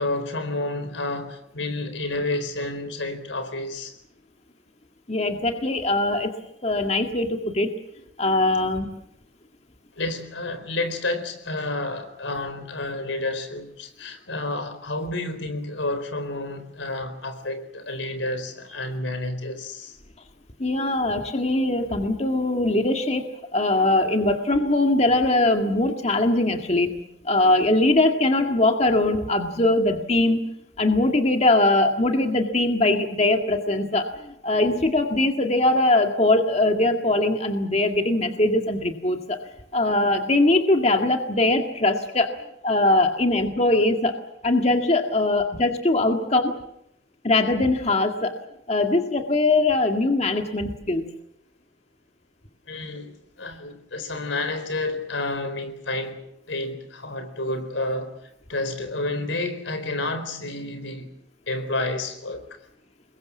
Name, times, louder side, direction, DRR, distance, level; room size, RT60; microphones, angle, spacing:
voice 1, 0.0-3.9 9.9-20.0 52.7-58.1 58.5-61.1 61.5-62.4, left 2 dB, 85° left, 9 dB, 4.3 m, -30 dB
voice 2, 5.1-6.3 6.6-7.8 8.2-8.9 20.6-34.1 34.4-39.4 39.7-42.3 42.6-46.5 47.2-48.3 48.7-51.1, left 2 dB, 35° left, 4 dB, 1.9 m, -21 dB
27.0 x 22.0 x 7.3 m, 0.78 s
head